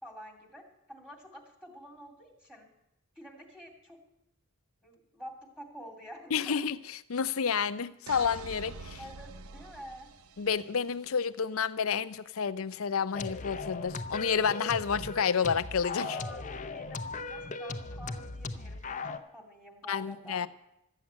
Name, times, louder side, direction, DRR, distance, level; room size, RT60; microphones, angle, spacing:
voice 1, 0.0-2.7 3.2-4.0 4.8-6.6 8.9-10.1 16.0-16.4 16.7-20.5, equal, 5° right, 2.4 m, -48 dB
voice 2, 6.3-9.0 10.4-16.2 19.9-20.5, left 6 dB, 75° left, 0.6 m, -30 dB
sound 1, 8.1-10.9, right 4 dB, 80° right, 0.6 m, -46 dB
sound 2, 13.1-19.2, left 3 dB, 35° left, 0.7 m, -38 dB
13.5 x 7.2 x 8.6 m
head